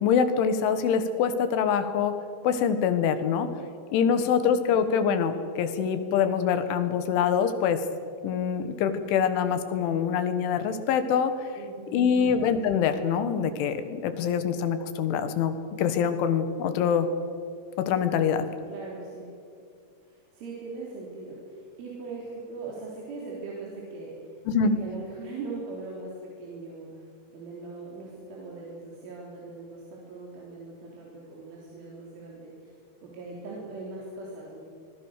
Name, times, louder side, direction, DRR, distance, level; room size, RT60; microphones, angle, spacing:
voice 1, 0.0-2.2 2.4-3.5 3.9-7.8 8.2-11.3 11.9-17.1 17.8-18.4 24.5-24.8, left 7 dB, 85° left, 9 dB, 4.0 m, -25 dB
voice 2, 11.6-12.1 18.7-19.3 20.0-24.4 24.6-27.1 27.3-32.8 33.0-34.6, right 3 dB, 90° right, -3 dB, 6.0 m, -40 dB
25.5 x 23.0 x 6.7 m, 2.4 s
omnidirectional pair, 5.4 m